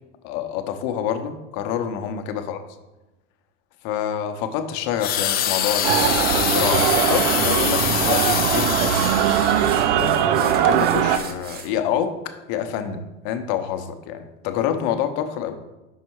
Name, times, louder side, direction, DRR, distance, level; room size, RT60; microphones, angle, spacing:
voice 1, 0.2-2.6 3.8-9.1 10.0-15.6, left 9 dB, 50° left, 8 dB, 0.8 m, -27 dB
sound 1, 5.0-9.9 10.6-10.8, left 11 dB, 25° left, 0.4 m, -25 dB
sound 2, 5.4-5.5 5.9-11.7, right 5 dB, 25° right, 0.8 m, -37 dB
sound 3, 5.8-11.2, right 10 dB, 65° right, 0.6 m, -20 dB
5.6 x 5.0 x 4.7 m, 1.1 s
hypercardioid pair, 100°, 38 cm